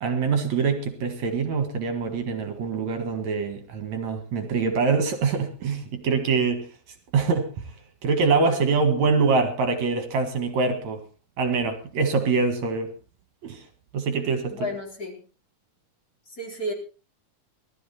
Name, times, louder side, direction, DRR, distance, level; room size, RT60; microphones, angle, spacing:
voice 1, 0.0-6.7 7.1-7.5 8.0-11.0 11.4-12.9 13.4-13.6 13.9-14.7, right 4 dB, 65° right, 3.1 m, -24 dB
voice 2, 14.5-15.2 16.3-16.7, equal, 30° left, 4.8 m, -32 dB
19.0 x 13.5 x 4.3 m
omnidirectional pair, 3.5 m